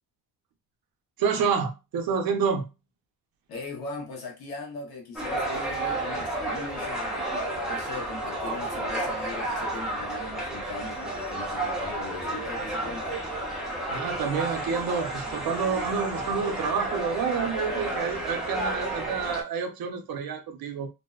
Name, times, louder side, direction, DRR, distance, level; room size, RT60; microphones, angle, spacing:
voice 1, 1.2-2.7 13.9-20.9, right 6 dB, 70° right, 0.6 m, -28 dB
voice 2, 3.5-7.3 7.7-13.2, left 3 dB, 75° left, 0.8 m, -39 dB
sound 1, 5.2-19.4, right 1 dB, ahead, 0.5 m, -31 dB
2.6 x 2.1 x 2.3 m
cardioid pair, 175°, 37 cm